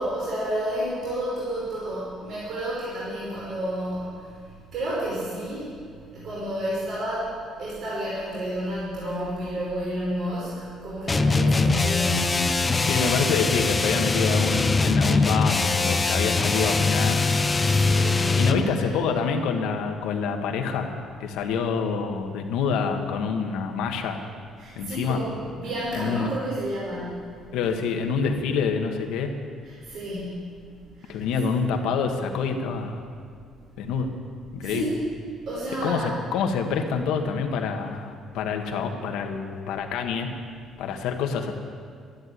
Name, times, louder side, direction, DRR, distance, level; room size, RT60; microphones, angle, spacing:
voice 1, 0.0-4.4 4.7-5.7 6.1-7.3 7.6-12.6 17.5-18.9 24.6-27.3 29.6-30.6 31.0-31.2 34.6-35.0 35.5-36.1, equal, 60° right, -8 dB, 5.2 m, -31 dB
sound 1, 11.1-18.7, left 3 dB, 15° left, 0.6 m, -22 dB
voice 2, 12.8-17.2 18.3-20.9 21.2-24.2 24.7-25.2 25.9-26.3 27.5-29.3 31.1-33.0 33.8-34.1 34.5-34.8 35.8-40.3 40.8-41.5, left 5 dB, 90° left, 4 dB, 1.6 m, -26 dB
13.0 x 12.0 x 8.2 m, 2.1 s
cardioid pair, 145°, 0 cm